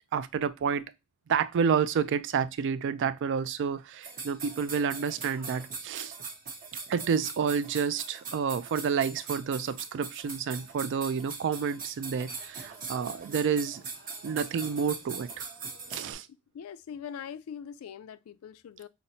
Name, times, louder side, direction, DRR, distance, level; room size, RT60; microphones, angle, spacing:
voice 1, 0.1-0.9 1.3-6.1 6.9-13.8 14.2-15.5 15.9-16.3, right 6 dB, 60° right, 0.3 m, -29 dB
sound 1, 4.0-16.1, right 5 dB, 40° right, 0.8 m, -41 dB
voice 2, 16.5-18.9, left 8 dB, 75° left, 0.3 m, -42 dB
5.7 x 2.0 x 2.6 m
head